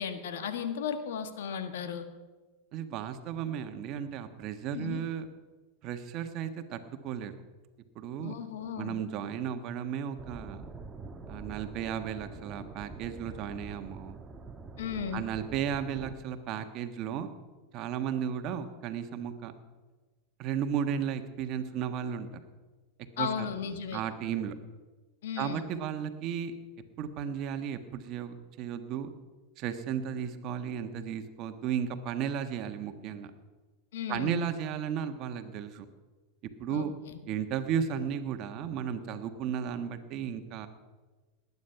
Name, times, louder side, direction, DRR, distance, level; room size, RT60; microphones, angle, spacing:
voice 1, 0.0-2.0 4.7-5.0 8.2-9.0 14.8-15.2 23.2-24.0 25.2-25.7 33.9-34.4 36.7-37.2, left 7 dB, 75° left, 9 dB, 1.5 m, -35 dB
voice 2, 2.7-5.3 5.8-7.3 7.9-8.3 8.7-10.6 11.3-14.2 15.1-17.3 17.7-19.5 20.4-22.4 23.2-23.5 23.9-24.5 25.4-26.5 27.0-29.1 29.6-33.3 34.1-35.8 36.6-36.9 37.3-40.7, right 8 dB, 45° right, 8 dB, 1.4 m, -34 dB
sound 1, 10.2-16.1, right 4 dB, 20° right, 1.4 m, -45 dB
19.5 x 9.6 x 5.8 m, 1.3 s
hypercardioid pair, 100°, 0 cm